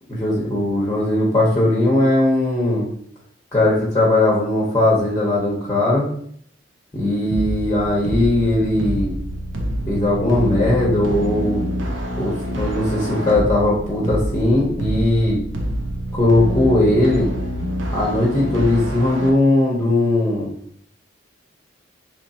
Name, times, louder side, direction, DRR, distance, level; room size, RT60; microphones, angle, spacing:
voice 1, 0.1-2.9 3.5-6.1 6.9-9.2 9.9-11.6 12.2-15.4 16.1-17.3 17.9-20.5, left 1 dB, 15° left, -4 dB, 0.8 m, -18 dB
sound 1, 7.3-19.3, equal, 80° right, 0.6 m, -26 dB
3.1 x 2.6 x 4.1 m, 0.63 s
head